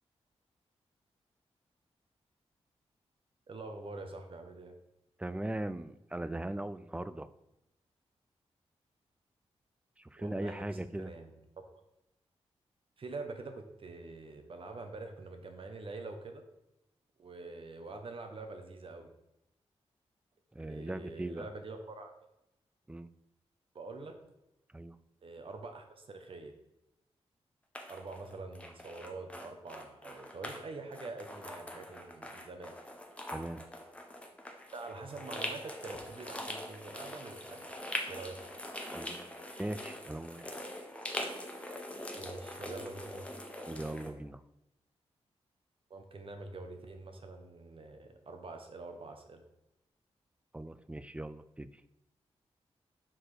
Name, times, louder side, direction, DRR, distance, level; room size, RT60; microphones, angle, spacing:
voice 1, 3.5-4.7 10.2-10.7 11.0-11.3 13.0-16.4 17.2-19.1 20.6-22.1 23.7-24.2 25.2-26.5 27.9-32.7 34.7-37.7 38.1-38.4 42.1-43.2 45.9-49.4, right 3 dB, 55° right, 5 dB, 1.1 m, -45 dB
voice 2, 5.2-7.3 10.0-11.1 20.5-21.5 22.9-23.1 24.7-25.0 33.3-33.6 38.9-40.5 43.7-44.4 50.5-51.7, right 1 dB, 10° right, 13 dB, 0.4 m, -39 dB
sound 1, 27.7-30.6 30.9-44.1, left 1 dB, 10° left, 1.0 m, -43 dB
6.0 x 4.6 x 4.8 m, 0.89 s
cardioid pair, 75°, 11 cm